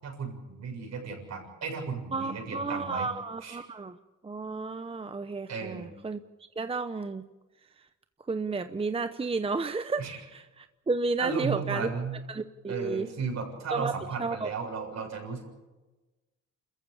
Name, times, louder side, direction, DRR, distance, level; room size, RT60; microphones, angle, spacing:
voice 1, 0.0-3.1 3.4-3.6 5.5-5.9 10.0-10.2 11.2-12.2 12.7-15.4, right 5 dB, 60° right, 2 dB, 7.1 m, -35 dB
voice 2, 2.1-4.0 4.2-6.2 6.6-7.2 8.3-11.9 12.3-13.1 13.7-14.5, right 3 dB, 20° right, 11 dB, 0.8 m, -32 dB
28.0 x 15.0 x 8.5 m, 1.2 s
cardioid pair, 90°, 30 cm